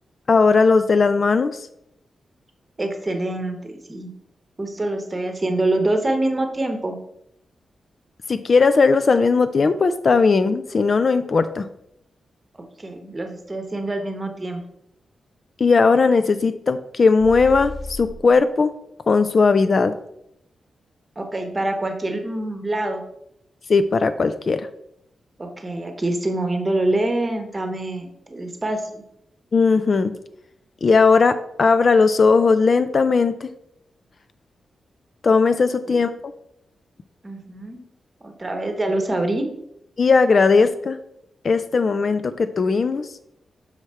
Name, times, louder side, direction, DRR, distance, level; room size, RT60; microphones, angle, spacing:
voice 1, 0.3-1.7 8.3-11.7 15.6-18.7 19.1-19.9 23.7-24.7 29.5-30.1 30.8-33.5 35.2-36.1 40.0-41.0 41.4-43.1, left 4 dB, 40° left, 11 dB, 0.3 m, -17 dB
voice 2, 2.8-4.1 4.6-7.0 12.5-14.6 21.2-23.0 25.4-29.0 35.9-36.0 37.2-37.8 38.2-39.5, right 2 dB, 20° right, 5 dB, 1.0 m, -25 dB
sound 1, 17.2-18.4, left 1 dB, 20° left, 1.1 m, -34 dB
6.5 x 4.8 x 4.3 m, 0.77 s
wide cardioid pair, 150°, 0 cm